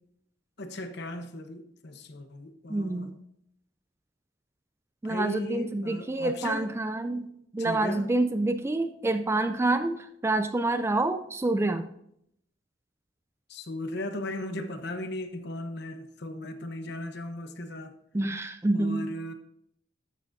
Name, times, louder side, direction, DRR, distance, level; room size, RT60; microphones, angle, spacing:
voice 1, 0.6-3.1 5.0-6.7 7.1-7.2 7.6-8.0 13.5-17.9 18.7-19.3, left 1 dB, 60° left, 1.0 m, -37 dB
voice 2, 2.7-3.2 5.0-7.3 7.5-11.9 18.1-19.1, right 2 dB, 15° right, 0.3 m, -27 dB
13.0 x 7.5 x 2.6 m
head